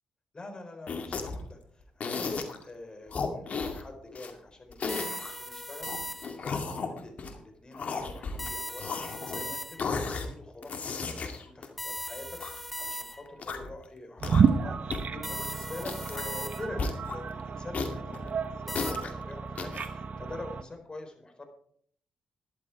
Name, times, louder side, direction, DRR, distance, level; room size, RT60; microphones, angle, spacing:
voice 1, 0.3-21.5, left 2 dB, 30° left, 5 dB, 4.3 m, -45 dB
sound 1, 0.9-1.5 2.0-2.6 3.1-4.3 4.7-5.3 5.8-7.4 7.7-8.5 8.8-9.5 9.8-10.3 10.6-12.6 13.3-13.8 14.2-14.7 14.9-15.0 15.3-15.5 15.8-16.3 16.8-17.2 17.7-19.1 19.6-19.9, left 4 dB, 55° left, 2.2 m, -34 dB
sound 2, 4.9-6.6 8.4-10.1 11.8-13.4 15.2-16.9 18.7-18.9, equal, 5° left, 1.0 m, -39 dB
sound 3, 14.2-20.6, right 6 dB, 55° right, 1.1 m, -31 dB
13.5 x 11.0 x 4.7 m, 0.62 s
hypercardioid pair, 45°, 3 cm